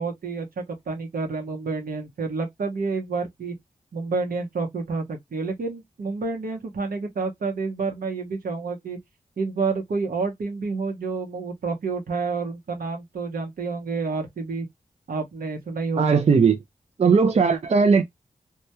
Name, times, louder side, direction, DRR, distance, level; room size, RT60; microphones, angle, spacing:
voice 1, 0.0-3.5 3.9-9.0 9.4-14.7 15.1-16.2, right 4 dB, 80° right, 0.8 m, -29 dB
voice 2, 16.0-16.6 17.0-18.0, right 5 dB, 50° right, 0.4 m, -18 dB
2.2 x 2.2 x 2.7 m
cardioid pair, 55°, 15 cm